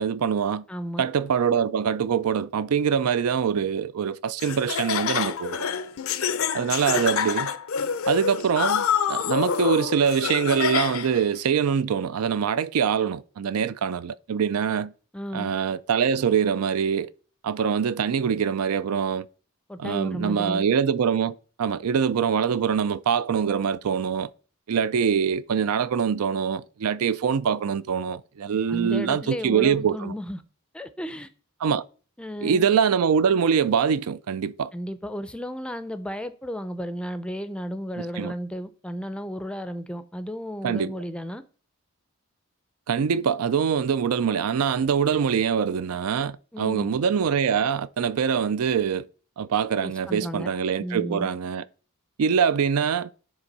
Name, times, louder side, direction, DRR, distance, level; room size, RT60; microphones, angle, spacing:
voice 1, 0.0-0.6 1.0-5.7 6.5-7.5 8.1-14.9 15.3-17.1 17.4-19.3 19.8-24.3 24.7-30.1 31.6-31.8 32.4-34.7 38.2-38.3 40.6-41.0 42.9-49.1 49.4-51.6 52.2-53.1, right 7 dB, 85° right, 0.4 m, -24 dB
voice 2, 0.7-1.0 15.1-15.5 19.7-20.6 28.7-30.4 30.7-31.3 32.2-32.7 34.7-41.4 46.5-46.9 49.8-50.5 50.8-51.3, equal, 5° left, 0.4 m, -33 dB
Laughter, 4.4-11.2, left 7 dB, 70° left, 0.6 m, -27 dB
9.8 x 3.5 x 5.3 m
head